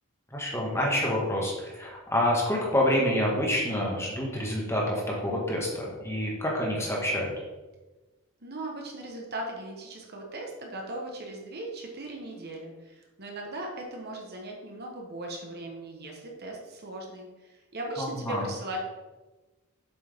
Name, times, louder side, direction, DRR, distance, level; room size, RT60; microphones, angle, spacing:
voice 1, 0.3-7.3 18.0-18.4, left 1 dB, 15° left, -3 dB, 1.7 m, -27 dB
voice 2, 8.4-18.8, right 1 dB, 50° right, 0 dB, 1.3 m, -38 dB
7.6 x 6.2 x 3.6 m, 1.2 s
head